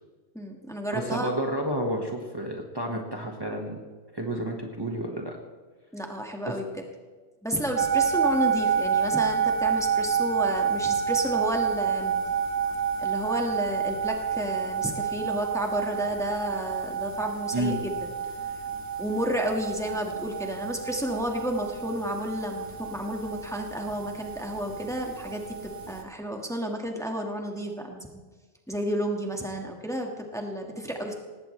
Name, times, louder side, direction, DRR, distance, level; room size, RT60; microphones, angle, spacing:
voice 1, 0.3-1.3 5.9-6.6 7.4-12.2 13.0-18.1 19.0-28.2 28.7-31.2, equal, 5° left, 2 dB, 1.7 m, -31 dB
voice 2, 0.9-3.8 4.1-5.4 6.5-6.6 17.5-17.8, right 1 dB, 20° right, 1 dB, 1.5 m, -30 dB
sound 1, 7.8-26.0, right 7 dB, 75° right, 1.9 m, -29 dB
19.0 x 16.5 x 3.3 m, 1.3 s
omnidirectional pair, 1.1 m